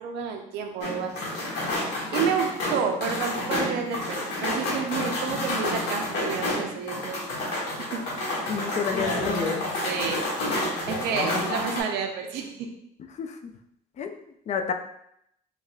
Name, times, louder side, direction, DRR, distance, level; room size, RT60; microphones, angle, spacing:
voice 1, 0.0-1.4 1.9-7.2 7.9-8.0 8.4-8.6 9.8-10.2 10.9-12.7, right 6 dB, 90° right, 3 dB, 0.5 m, -30 dB
sound 1, 0.8-11.8, left 1 dB, 80° left, 1.2 m, -29 dB
voice 2, 8.5-9.6 13.2-13.5 14.0-14.2 14.5-14.7, left 6 dB, 45° left, 6 dB, 0.4 m, -30 dB
4.9 x 2.3 x 2.3 m, 0.76 s
cardioid pair, 110°, 17 cm